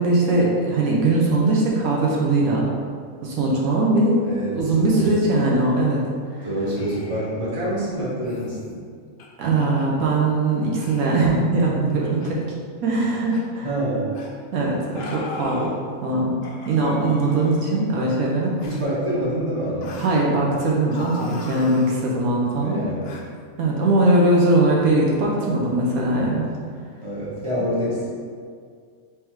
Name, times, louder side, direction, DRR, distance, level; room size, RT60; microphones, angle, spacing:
voice 1, 0.0-2.6 3.2-4.2 4.5-6.0 6.4-6.5 9.4-12.4 12.8-13.7 14.5-15.7 16.0-16.4 16.7-18.6 20.0-22.8 23.6-26.5, right 2 dB, 80° right, -3 dB, 1.2 m, -20 dB
voice 2, 4.2-5.1 6.4-8.8 13.6-14.2 18.6-20.0 22.6-23.2 27.0-28.1, right 1 dB, 20° right, -9 dB, 1.3 m, -26 dB
sound 1, 6.8-7.4 8.2-8.6 9.2-9.3 9.6-9.8 10.7-11.2 12.2-12.3 13.3-13.4 14.1-14.3 14.9-15.8 16.4-17.9 18.6-18.9 19.8-20.2 20.9-22.0 23.0-23.2, left 2 dB, 60° left, 0.6 m, -39 dB
3.5 x 3.2 x 4.5 m, 2.1 s
omnidirectional pair, 1.5 m